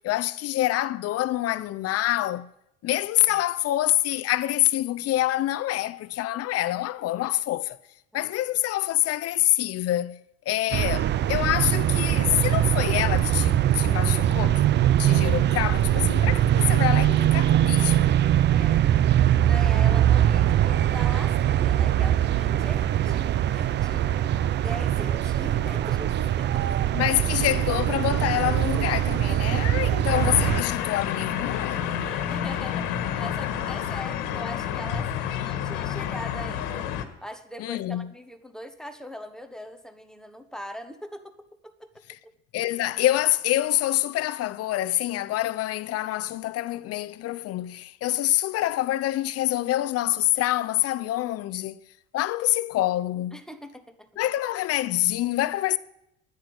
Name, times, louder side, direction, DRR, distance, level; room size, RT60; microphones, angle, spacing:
voice 1, 0.0-2.5 2.8-7.8 8.1-14.7 15.0-18.1 26.9-31.9 37.6-38.1 42.5-51.8 52.1-53.4 54.2-55.8, left 15 dB, 50° left, 0.7 m, -26 dB
sound 1, 10.7-30.6, right 11 dB, 35° right, 0.5 m, -22 dB
voice 2, 18.4-18.9 19.5-24.2 24.5-26.9 32.0-36.9 37.2-41.3 41.6-41.9 42.2-42.3 53.3-54.1, equal, ahead, 1.2 m, -41 dB
sound 2, 30.1-37.1, left 9 dB, 70° left, 1.7 m, -29 dB
10.5 x 9.8 x 7.8 m
supercardioid pair, 110°, 32 cm